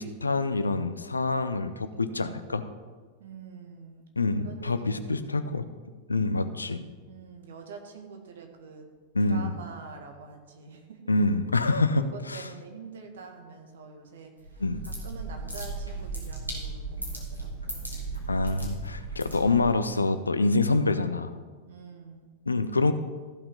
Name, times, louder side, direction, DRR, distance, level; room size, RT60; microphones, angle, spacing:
voice 1, 0.0-2.6 4.2-5.6 6.1-6.8 9.1-9.5 11.1-12.5 14.6-14.8 18.3-21.3 22.5-22.9, left 3 dB, 80° left, 11 dB, 0.6 m, -26 dB
voice 2, 3.2-4.1 4.4-5.1 5.4-5.5 7.1-8.9 9.2-11.0 11.6-11.7 12.0-14.6 15.0-17.9 21.6-22.3, right 5 dB, 60° right, 4 dB, 1.6 m, -45 dB
sound 1, 14.4-19.8, right 3 dB, 85° right, 2.2 m, -36 dB
14.5 x 5.8 x 5.3 m, 1.4 s
figure-of-eight pair, 90°, 0 cm